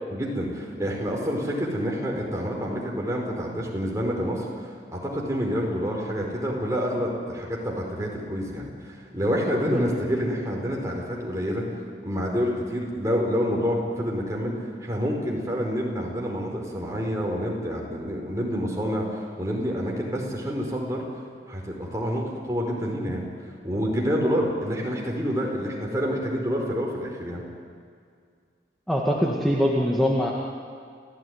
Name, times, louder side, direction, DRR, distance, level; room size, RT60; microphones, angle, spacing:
voice 1, 0.1-11.6 12.0-14.5 14.8-21.0 21.5-23.2 23.6-27.4, equal, 20° right, -1 dB, 4.8 m, -28 dB
voice 2, 28.9-30.3, equal, ahead, -3 dB, 2.0 m, -23 dB
29.0 x 16.5 x 9.7 m, 2.1 s
head